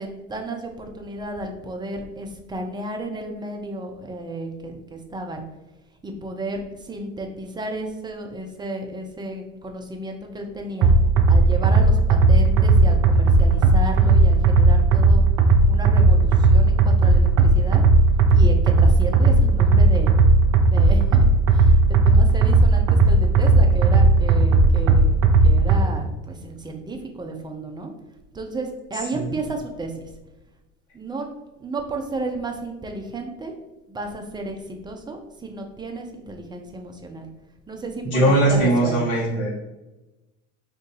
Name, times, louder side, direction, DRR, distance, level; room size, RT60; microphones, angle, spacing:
voice 1, 0.0-5.4 6.0-10.9 11.3-15.2 15.7-17.8 18.3-20.1 20.6-27.9 28.3-30.1 30.9-31.3 31.6-33.5 33.9-37.3 37.7-39.1, right 2 dB, 10° right, 3 dB, 0.5 m, -33 dB
sound 1, 10.8-25.8, right 3 dB, 60° right, 0.6 m, -15 dB
voice 2, 38.1-39.5, right 1 dB, 45° left, -5 dB, 1.2 m, -19 dB
2.7 x 2.6 x 3.8 m, 1.0 s
hypercardioid pair, 70°, 40 cm